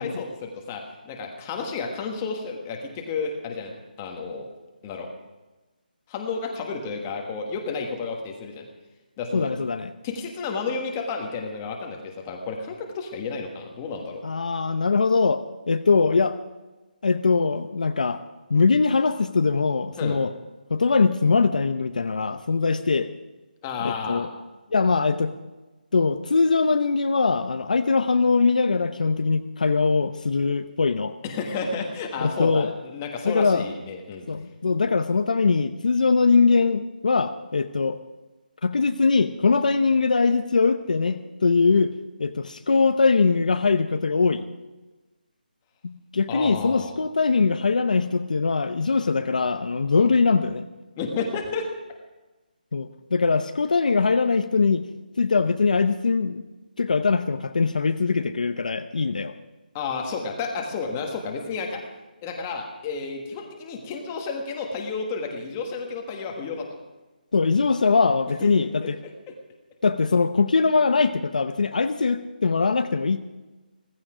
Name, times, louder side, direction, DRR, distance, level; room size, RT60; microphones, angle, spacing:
voice 1, 0.0-4.5 4.8-5.1 6.1-8.6 9.2-9.5 10.0-14.2 20.0-20.2 23.6-24.3 31.2-34.2 46.3-46.9 51.0-51.7 59.7-61.8 62.2-66.6 68.4-68.9, left 4 dB, 15° left, 2 dB, 1.4 m, -31 dB
voice 2, 9.3-9.9 14.2-16.4 17.0-18.2 18.5-20.3 20.7-23.1 23.8-24.3 24.7-25.3 25.9-31.1 32.2-32.7 33.2-33.7 34.3-38.0 38.6-41.9 42.2-44.5 45.8-50.7 52.7-54.9 55.2-56.4 56.8-59.3 67.3-68.9 69.8-73.2, left 4 dB, 55° left, 9 dB, 0.8 m, -22 dB
16.0 x 15.5 x 5.0 m, 1.2 s
hypercardioid pair, 175°, 5 cm